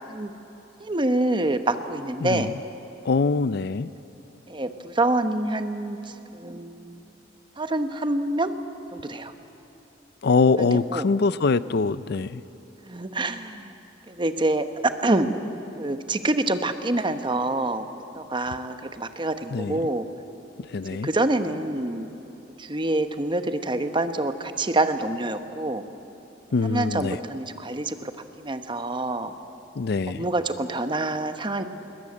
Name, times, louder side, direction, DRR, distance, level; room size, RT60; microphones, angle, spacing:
voice 1, 0.8-2.5 4.5-6.0 6.3-7.0 7.6-8.5 8.9-9.3 10.6-11.1 12.9-13.7 14.1-15.4 15.8-17.9 18.1-20.1 21.0-22.1 22.6-25.8 26.6-28.0 28.4-29.3 30.1-31.6, right 2 dB, 25° right, 9 dB, 1.0 m, -26 dB
voice 2, 3.1-3.9 10.2-12.4 19.5-19.9 20.7-21.1 26.5-27.2 29.8-30.3, left 4 dB, 60° left, 16 dB, 0.5 m, -23 dB
21.0 x 21.0 x 8.6 m, 2.9 s
head